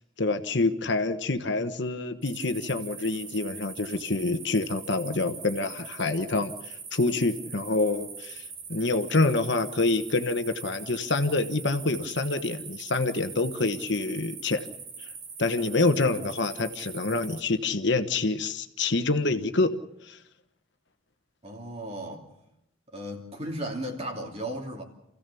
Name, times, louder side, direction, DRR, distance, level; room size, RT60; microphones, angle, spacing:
voice 1, 0.2-8.4 8.7-14.7 15.4-19.7 20.1-20.2, left 3 dB, 60° left, 1.2 m, -27 dB
sound 1, 2.2-17.4, right 5 dB, 45° right, 3.3 m, -42 dB
voice 2, 21.4-22.3 22.9-24.8, right 1 dB, 30° right, 2.9 m, -35 dB
28.0 x 16.0 x 7.0 m
head